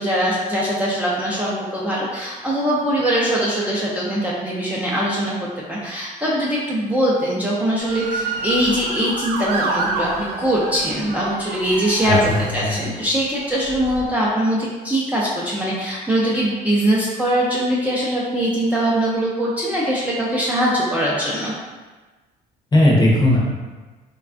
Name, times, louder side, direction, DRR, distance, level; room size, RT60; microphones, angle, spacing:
voice 1, 0.0-12.2 12.5-21.5, right 1 dB, 10° right, -7 dB, 0.4 m, -22 dB
Motor vehicle (road) / Siren, 7.8-13.0 13.7-14.1, right 3 dB, 75° right, 0.5 m, -28 dB
voice 2, 12.0-12.8 22.7-23.4, left 1 dB, 25° left, -4 dB, 0.7 m, -17 dB
3.2 x 2.2 x 2.5 m, 1.3 s
cardioid pair, 110°, 17 cm